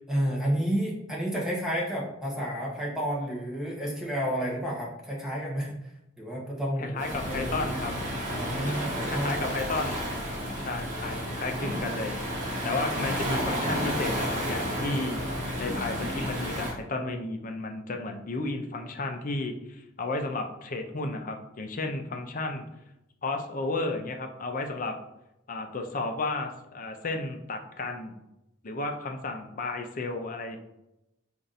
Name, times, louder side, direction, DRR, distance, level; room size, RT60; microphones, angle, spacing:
voice 1, 0.1-5.8 6.2-7.8 8.3-9.6 10.7-11.4, equal, ahead, -4 dB, 1.0 m, -31 dB
voice 2, 6.8-7.9 9.1-10.0 10.6-12.2 12.6-15.2 15.6-22.7 23.2-25.0 25.5-28.2 28.6-30.6, left 2 dB, 40° left, 5 dB, 0.5 m, -33 dB
Waves surf, 7.0-16.7, equal, 35° right, 1.1 m, -31 dB
4.4 x 2.6 x 4.0 m, 0.87 s
head